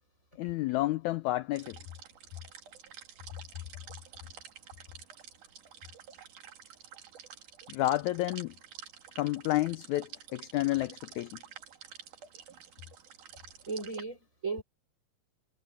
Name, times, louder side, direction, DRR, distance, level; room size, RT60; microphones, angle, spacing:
voice 1, 0.4-1.8 7.7-8.5 9.1-11.4, left 16 dB, 80° left, 1.7 m, -30 dB
sound 1, 1.5-14.0, right 8 dB, 65° right, 3.5 m, -50 dB
voice 2, 13.7-14.6, right 4 dB, 20° right, 4.5 m, -36 dB
omnidirectional pair, 3.9 m